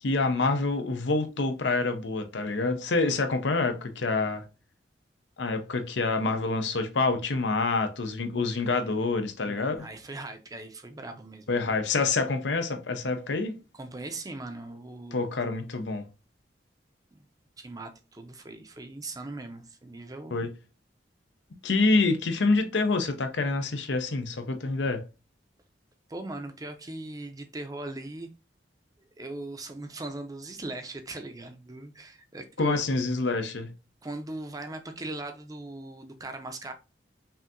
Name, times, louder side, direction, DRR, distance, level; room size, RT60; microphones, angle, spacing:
voice 1, 0.0-4.4 5.4-9.9 11.5-13.5 15.1-16.0 20.3-20.5 21.6-25.0 32.6-33.7, left 3 dB, 80° left, 0.7 m, -27 dB
voice 2, 9.4-11.5 13.7-15.3 17.1-17.2 17.6-20.4 26.1-28.3 29.2-32.8 34.0-36.7, right 2 dB, 20° right, 0.6 m, -39 dB
5.6 x 2.7 x 2.5 m
head